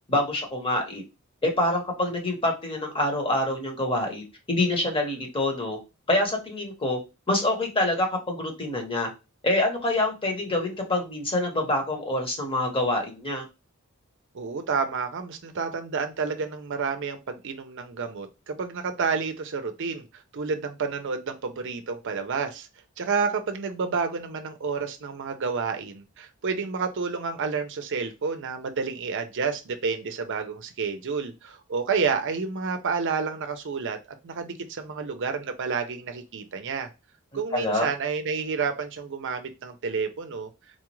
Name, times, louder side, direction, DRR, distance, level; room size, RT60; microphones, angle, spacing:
voice 1, 0.1-1.0 1.4-5.8 6.1-7.0 7.3-9.1 9.4-13.4 37.5-37.9, left 1 dB, 25° left, 2 dB, 1.0 m, -26 dB
voice 2, 14.3-20.0 20.3-22.7 23.0-34.0 34.2-36.9 37.3-40.5, right 5 dB, 60° right, 7 dB, 0.5 m, -30 dB
4.1 x 2.4 x 3.0 m, 0.27 s
head